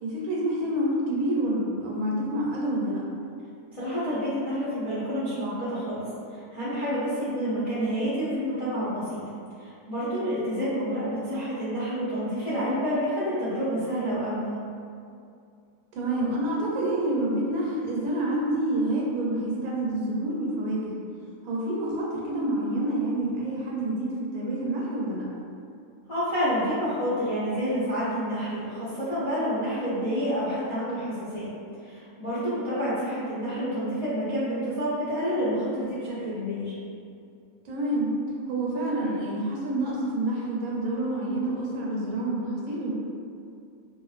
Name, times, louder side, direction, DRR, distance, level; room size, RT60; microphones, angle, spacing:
voice 1, 0.0-3.0 15.9-20.9 21.4-25.3 37.6-38.1 38.5-42.9, right 1 dB, 80° right, -4 dB, 1.1 m, -28 dB
voice 2, 3.7-6.0 6.3-9.2 9.6-14.5 26.1-31.5 31.8-36.7, equal, 50° left, -11 dB, 0.4 m, -28 dB
2.4 x 2.4 x 2.4 m, 2.4 s
omnidirectional pair, 1.5 m